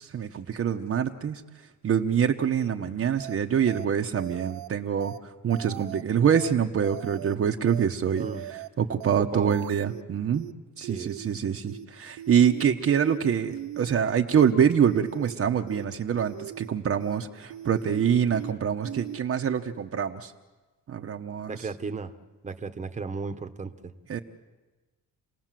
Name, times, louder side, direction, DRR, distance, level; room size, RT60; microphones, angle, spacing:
voice 1, 0.0-1.4 1.8-5.1 5.4-8.3 8.8-10.5 10.8-20.3 20.9-21.6 24.1-24.2, right 8 dB, 40° right, 4 dB, 1.1 m, -25 dB
sound 1, 3.2-3.4 3.7-3.9 4.2-4.7 5.0-5.2 5.5-6.0 6.3-6.5 6.8-7.4 7.7-7.9 8.2-8.7 9.0-9.2 9.5-10.0 10.3-10.5 10.8-11.4 11.7-11.9 12.2-12.7 13.0-13.2 13.5-14.0 14.3-14.5 14.8-15.4 15.7-15.9 16.2-16.7 17.0-17.2 17.5-18.0 18.3-18.5 18.8-19.2, right 14 dB, 85° right, 0.8 m, -39 dB
voice 2, 10.8-11.1 21.5-22.1 22.4-23.9, right 4 dB, 20° right, 8 dB, 1.3 m, -35 dB
29.0 x 18.5 x 7.6 m, 1.2 s
cardioid pair, 135°, 34 cm